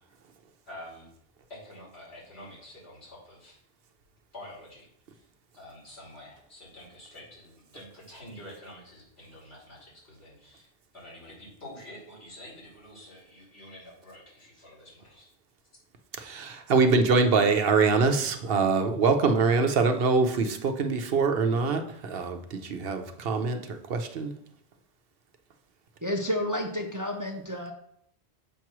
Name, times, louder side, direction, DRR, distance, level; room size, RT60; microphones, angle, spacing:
voice 1, 0.6-1.1 1.5-3.6 4.3-4.9 5.1-5.3 5.5-15.3, left 1 dB, 85° left, -6 dB, 3.3 m, -47 dB
voice 2, 16.2-24.3, right 4 dB, 70° right, 6 dB, 0.9 m, -24 dB
voice 3, 26.0-27.7, left 1 dB, 25° right, 3 dB, 0.5 m, -30 dB
7.0 x 3.0 x 5.9 m, 0.70 s
omnidirectional pair, 1.1 m